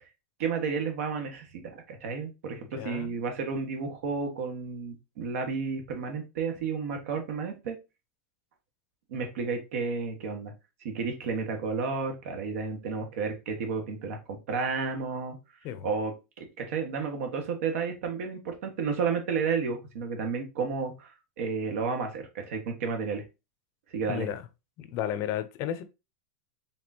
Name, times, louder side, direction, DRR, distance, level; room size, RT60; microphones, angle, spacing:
voice 1, 0.4-7.8 9.1-10.5 10.8-15.4 15.8-21.1 21.4-23.2 23.9-24.3, right 5 dB, 75° right, 1.6 m, -32 dB
voice 2, 2.7-3.2 15.6-15.9 24.0-24.4 24.8-25.8, left 10 dB, 40° left, 0.6 m, -33 dB
5.2 x 3.7 x 2.8 m
supercardioid pair, 155°, 8 cm